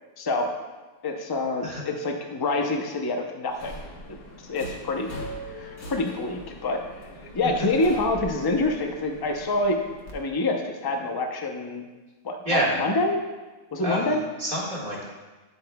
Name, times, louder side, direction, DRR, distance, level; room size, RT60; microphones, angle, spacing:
voice 1, 0.2-0.5 1.0-3.7 4.1-4.2 4.5-5.1 5.5-6.8 7.3-9.8 10.1-11.8 12.2-13.2 13.7-14.2, left 2 dB, 35° left, 3 dB, 0.3 m, -26 dB
Subway metro underground, 3.5-10.1, equal, 75° left, 1.7 m, -41 dB
voice 2, 13.8-15.0, right 1 dB, 30° right, -5 dB, 1.9 m, -27 dB
9.9 x 8.1 x 2.3 m, 1.2 s
omnidirectional pair, 1.6 m